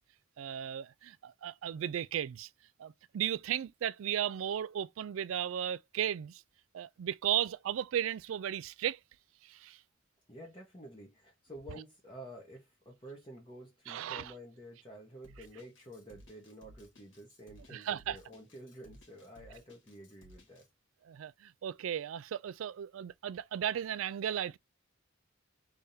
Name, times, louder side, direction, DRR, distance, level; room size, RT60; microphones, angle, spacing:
voice 1, 0.4-2.5 2.8-6.4 6.7-9.0 9.4-9.8 13.9-14.3 17.7-18.2 21.0-24.6, right 10 dB, 80° right, 0.3 m, -35 dB
voice 2, 10.3-20.7, equal, 25° left, 1.0 m, -50 dB
Drum kit, 15.2-20.7, equal, 60° left, 1.7 m, -58 dB
3.5 x 3.4 x 2.7 m
head